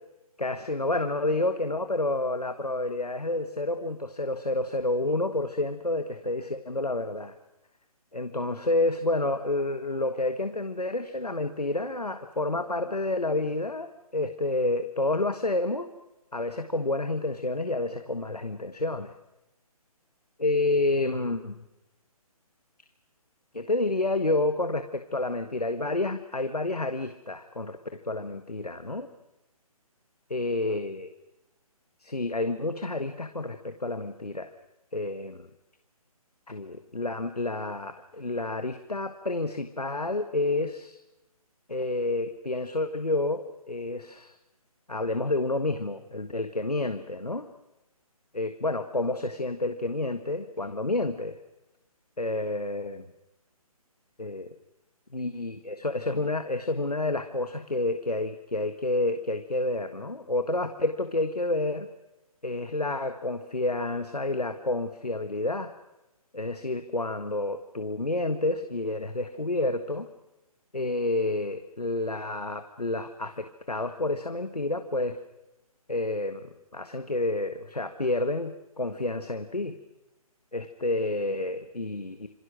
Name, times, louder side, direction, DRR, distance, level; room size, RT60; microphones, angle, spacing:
voice 1, 0.4-7.3 8.1-15.9 16.3-19.1 20.4-21.6 23.5-29.1 30.3-31.1 32.0-34.5 34.9-35.4 36.5-41.0 41.7-44.3 44.9-47.4 48.3-51.3 52.2-53.0 54.2-54.5 55.1-61.9 62.4-65.7 66.3-70.1 70.7-75.2 75.9-79.7 80.5-82.3, left 2 dB, 90° left, 8 dB, 1.6 m, -29 dB
27.0 x 24.0 x 6.2 m, 0.98 s
figure-of-eight pair, 145°, 19 cm